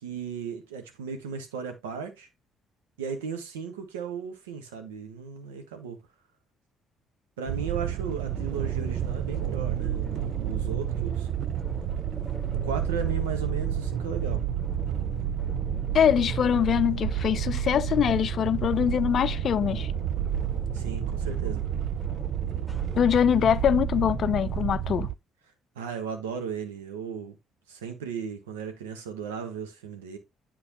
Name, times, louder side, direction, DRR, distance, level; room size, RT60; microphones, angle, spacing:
voice 1, 0.0-2.3 3.0-6.0 7.4-11.3 12.6-14.4 20.7-21.6 25.7-27.3 27.7-30.2, right 6 dB, 80° right, 1.1 m, -36 dB
sound 1, 7.5-25.1, right 11 dB, 60° right, 0.4 m, -30 dB
sound 2, 8.3-25.1, left 1 dB, 5° left, 1.3 m, -40 dB
voice 2, 15.9-19.9 23.0-25.1, left 9 dB, 50° left, 0.4 m, -23 dB
9.8 x 4.4 x 2.9 m
figure-of-eight pair, 45°, 0 cm